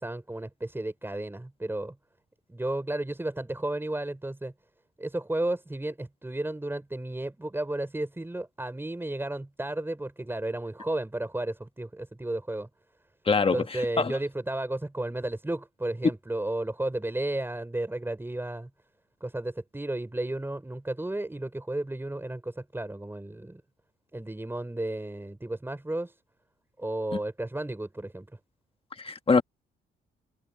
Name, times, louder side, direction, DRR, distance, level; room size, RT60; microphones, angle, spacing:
voice 1, 0.0-2.0 2.5-4.5 5.0-12.7 13.5-18.7 19.2-23.6 24.1-26.1 26.8-28.3, right 1 dB, 10° right, 6.2 m, -33 dB
voice 2, 13.3-13.6 14.0-14.1 29.0-29.4, left 4 dB, 30° left, 1.5 m, -22 dB
cardioid pair, 90°, 20 cm